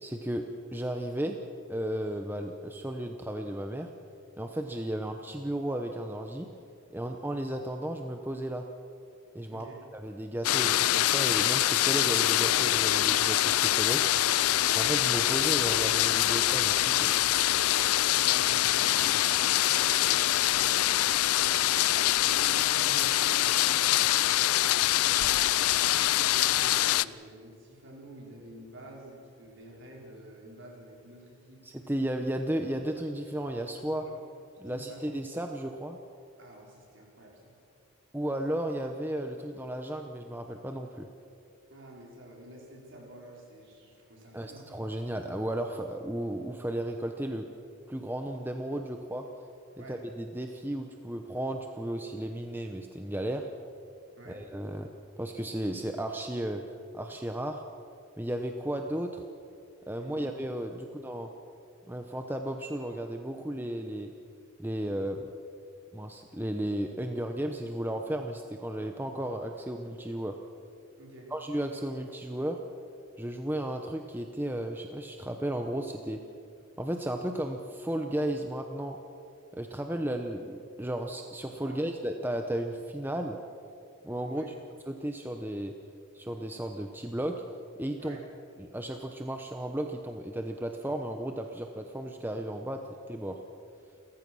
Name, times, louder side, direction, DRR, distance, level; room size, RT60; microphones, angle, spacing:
voice 1, 0.0-0.4 0.7-1.4 1.7-3.9 4.4-6.5 6.9-8.6 9.3-14.1 14.7-17.1 31.6-34.1 34.6-36.0 38.1-41.1 44.3-47.5 47.9-49.3 49.9-53.5 54.3-54.9 55.2-56.6 56.9-57.6 58.2-59.2 59.9-61.3 61.9-64.1 64.6-65.3 65.9-70.4 71.3-72.6 73.2-76.2 76.8-79.0 79.5-83.4 84.0-84.4 84.9-85.7 86.1-87.4 87.8-88.2 88.6-92.8 93.1-93.4, right 1 dB, 10° right, 4 dB, 0.8 m, -34 dB
voice 2, 9.5-9.8 17.9-21.7 21.9-24.3 24.8-31.6 34.0-34.2 34.6-35.3 36.4-37.5 41.7-45.2 49.8-50.0 54.1-54.5 59.9-60.9 71.0-71.3 81.7-81.9 84.2-84.5 88.0-88.3, right 1 dB, 55° right, -2 dB, 5.2 m, -49 dB
sound 1, 10.4-27.1, left 14 dB, 90° left, 0.5 m, -24 dB
29.5 x 14.5 x 6.3 m, 2.4 s
head